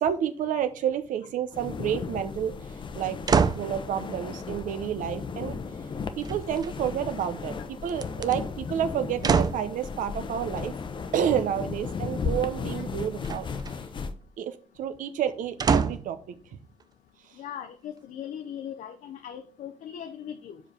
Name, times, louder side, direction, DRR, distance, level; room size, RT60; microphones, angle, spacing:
voice 1, 0.0-2.5 2.9-3.2 3.5-5.6 6.2-10.7 11.1-13.5 14.4-16.3, right 9 dB, 85° right, 9 dB, 0.7 m, -29 dB
sound 1, 1.5-14.1, left 5 dB, 40° left, 0.7 m, -35 dB
sound 2, 3.3-3.7 6.2-7.0 7.9-8.3 9.2-9.7 13.2-13.8 15.6-16.2 16.8-16.9, right 5 dB, 30° right, 0.4 m, -25 dB
voice 2, 17.4-20.6, left 9 dB, 85° left, 7 dB, 0.6 m, -39 dB
5.0 x 4.9 x 5.9 m, 0.41 s
cardioid pair, 145°, 13 cm